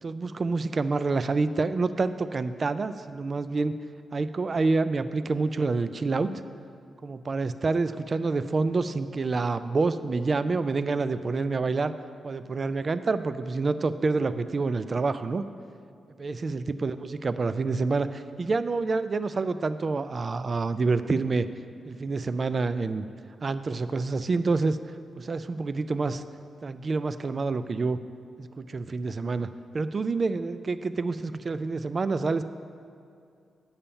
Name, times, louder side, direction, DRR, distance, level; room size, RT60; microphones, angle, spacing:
voice 1, 0.0-3.7 4.1-6.3 7.0-11.9 12.2-15.4 16.2-21.5 21.9-23.0 23.4-24.8 25.2-26.2 26.6-28.0 28.4-29.5 29.7-32.4, right 3 dB, 35° right, 12 dB, 0.3 m, -27 dB
8.8 x 5.6 x 7.0 m, 2.5 s
wide cardioid pair, 130°, 0 cm